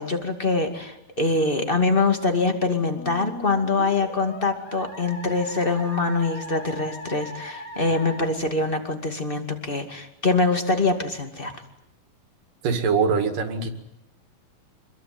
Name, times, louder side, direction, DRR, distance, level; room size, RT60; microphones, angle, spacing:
voice 1, 0.0-11.5, left 3 dB, 20° left, 5 dB, 1.8 m, -24 dB
Musical instrument, 2.9-8.2, left 1 dB, 50° left, 5.6 m, -39 dB
voice 2, 12.6-13.7, right 5 dB, 70° right, 6 dB, 3.8 m, -22 dB
26.5 x 22.5 x 9.5 m, 0.85 s
omnidirectional pair, 4.1 m